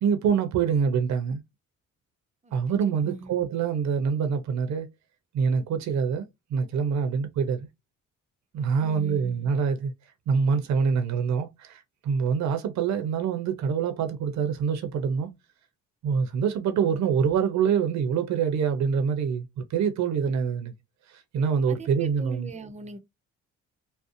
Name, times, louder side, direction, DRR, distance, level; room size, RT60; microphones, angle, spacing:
voice 1, 0.0-1.4 2.5-4.9 5.3-7.7 8.5-9.9 10.3-15.3 16.0-20.7 21.1-22.5, right 6 dB, 65° right, 0.6 m, -25 dB
voice 2, 2.9-3.4 8.8-9.5 21.7-23.0, right 3 dB, 25° right, 0.5 m, -41 dB
2.6 x 2.0 x 2.5 m
cardioid pair, 90°, 30 cm